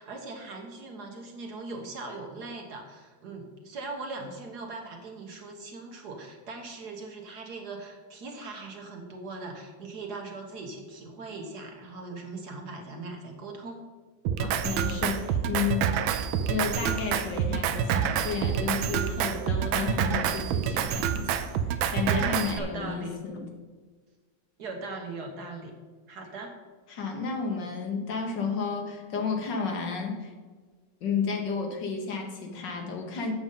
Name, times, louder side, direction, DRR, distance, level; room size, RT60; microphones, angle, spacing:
voice 1, 0.0-13.8 22.6-23.1 24.6-25.7 26.1-26.6, right 3 dB, 55° right, 2 dB, 1.6 m, -40 dB
Drum kit, 14.2-22.6, right 8 dB, 85° right, 1.4 m, -27 dB
voice 2, 14.4-16.2 16.5-21.5 21.9-23.4 26.9-30.3 31.0-33.3, left 5 dB, 65° left, 2 dB, 1.8 m, -32 dB
7.8 x 7.0 x 5.4 m, 1.5 s
omnidirectional pair, 2.1 m